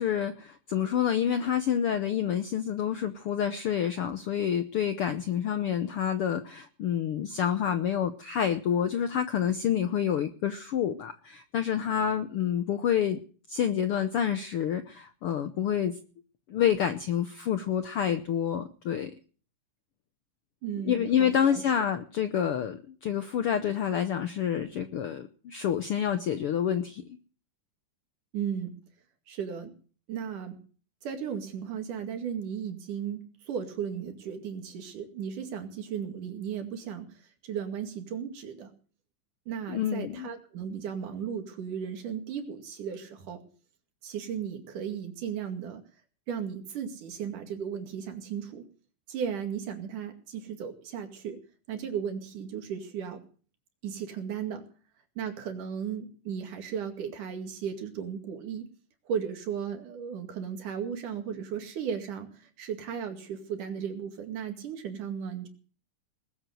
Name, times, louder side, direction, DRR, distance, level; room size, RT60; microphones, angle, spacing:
voice 1, 0.0-13.2 13.5-16.0 16.5-19.1 20.9-27.0 39.7-40.3, left 9 dB, 75° left, 10 dB, 1.3 m, -28 dB
voice 2, 20.6-21.6 28.3-28.7 29.3-29.7 30.1-30.6 31.0-37.2 37.4-38.7 39.5-43.4 44.0-45.8 46.3-48.7 49.1-51.4 51.7-53.2 53.8-54.7 55.2-58.7 59.1-65.5, right 7 dB, 75° right, 6 dB, 3.7 m, -35 dB
20.0 x 7.9 x 7.8 m, 0.41 s
omnidirectional pair, 3.7 m